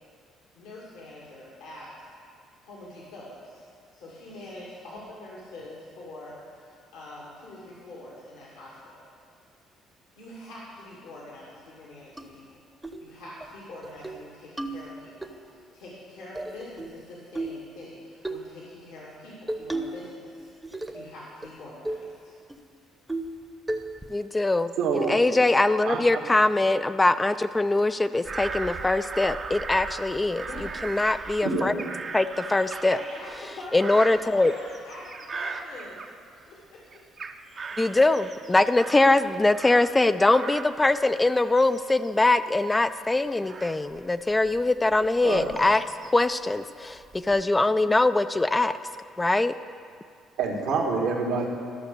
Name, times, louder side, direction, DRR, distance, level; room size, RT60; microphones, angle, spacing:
voice 1, 0.5-2.1 2.6-9.0 10.2-12.6 13.0-22.3 30.5-31.0 32.9-36.1 36.5-37.0, left 1 dB, 85° left, -5 dB, 2.2 m, -44 dB
sound 1, 12.2-12.3 12.8-13.0 13.4-13.5 13.8-14.2 14.6-15.3 16.4-17.0 17.4-17.7 18.2-18.5 19.5-20.1 20.4-21.1 21.4-21.5 21.9-22.1 22.5-22.6 23.1-23.4 23.7-24.1, right 2 dB, 10° right, 0.9 m, -33 dB
voice 2, 24.1-30.5 30.8-31.8 32.1-33.0 33.7-34.5 37.8-45.8 46.1-48.7 49.2-49.5, left 2 dB, 20° left, 11 dB, 0.4 m, -22 dB
voice 3, 24.8-25.1 25.8-26.2 31.4-31.7 45.2-45.5 50.4-51.4, right 4 dB, 80° right, -1 dB, 1.8 m, -26 dB
Bird vocalization bird call bird song / Crow, 28.2-36.6 36.9-40.0 40.3-46.3 46.9-47.4, right 4 dB, 45° right, 0.8 m, -39 dB
13.5 x 6.0 x 6.6 m, 2.2 s
supercardioid pair, 65°, 0 cm